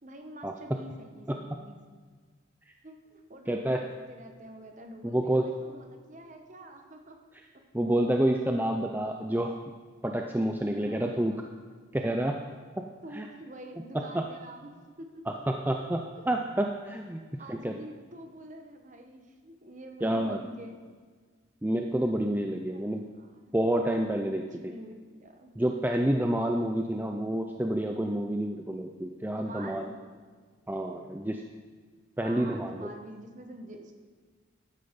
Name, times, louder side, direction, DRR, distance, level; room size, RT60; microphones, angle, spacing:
voice 1, 0.0-1.8 2.8-7.2 7.5-7.6 10.8-11.3 13.0-15.4 16.1-16.2 17.4-20.8 22.7-23.6 24.3-25.5 29.3-30.0 32.2-33.9, right 1 dB, 40° right, 4 dB, 1.2 m, -47 dB
voice 2, 3.5-3.9 5.0-5.5 7.7-9.6 10.0-11.4 11.9-12.4 12.8-12.9 13.1-13.3 13.9-14.3 15.3-17.2 17.5-17.8 20.0-20.4 21.6-23.1 23.5-24.7 25.6-29.9 30.7-31.4 32.2-32.9, right 1 dB, 10° right, 3 dB, 0.4 m, -28 dB
11.5 x 9.6 x 5.2 m, 1.5 s
head